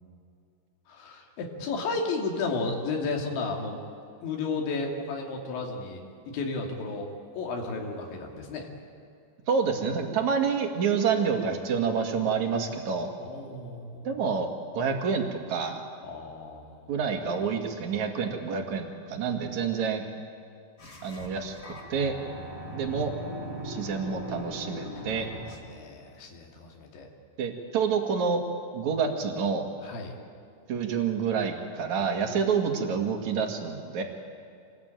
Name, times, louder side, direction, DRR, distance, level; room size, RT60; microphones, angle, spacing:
voice 1, 0.9-3.8 4.2-7.1 7.3-8.7 13.2-14.1 16.0-17.0 25.1-27.1 29.8-30.1, left 3 dB, 85° left, 1 dB, 5.0 m, -33 dB
voice 2, 9.5-13.1 14.0-15.8 16.9-20.0 21.0-22.1 22.7-23.1 23.6-25.3 27.4-28.4 28.7-29.7 30.7-34.0, right 6 dB, 50° right, 4 dB, 2.9 m, -28 dB
sound 1, 20.8-25.7, equal, 25° left, 2.9 m, -39 dB
26.5 x 19.5 x 9.1 m, 2.4 s
omnidirectional pair, 5.1 m